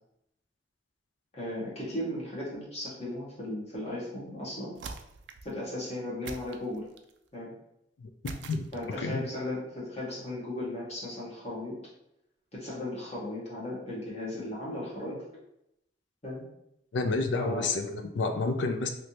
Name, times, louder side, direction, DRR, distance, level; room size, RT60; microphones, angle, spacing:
voice 1, 1.3-4.8 5.4-6.9 7.3-7.6 8.7-11.8 12.5-15.2 16.2-16.4 17.3-17.7, left 1 dB, 40° left, -6 dB, 1.3 m, -36 dB
sound 1, 4.7-5.5 6.2-7.2 8.2-9.1, right 4 dB, 70° right, 0.3 m, -44 dB
voice 2, 8.0-8.7 9.0-9.2 16.9-18.9, left 3 dB, 80° left, 6 dB, 0.4 m, -30 dB
3.2 x 2.7 x 2.9 m, 0.81 s
head